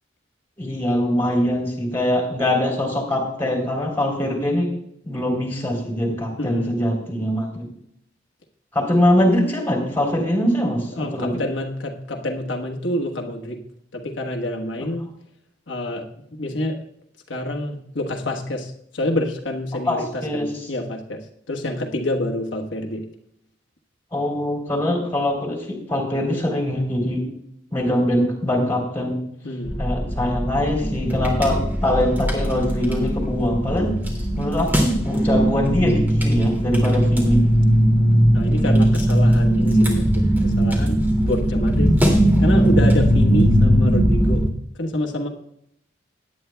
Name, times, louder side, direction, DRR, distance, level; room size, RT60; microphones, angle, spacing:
voice 1, 0.6-4.7 5.0-7.7 8.7-11.4 19.9-20.5 24.1-27.2 27.7-29.2 29.8-34.0 34.3-37.4, left 1 dB, 15° left, 0 dB, 3.4 m, -22 dB
voice 2, 6.4-6.8 10.9-13.6 13.9-15.1 15.7-16.8 17.3-21.2 21.5-23.1 29.4-29.8 36.9-37.0 38.3-42.0 42.4-44.4 44.8-45.3, left 1 dB, 90° left, 1 dB, 1.3 m, -27 dB
sound 1, 29.7-44.5, equal, 10° right, 2.3 m, -19 dB
17.0 x 9.8 x 2.2 m, 0.73 s
head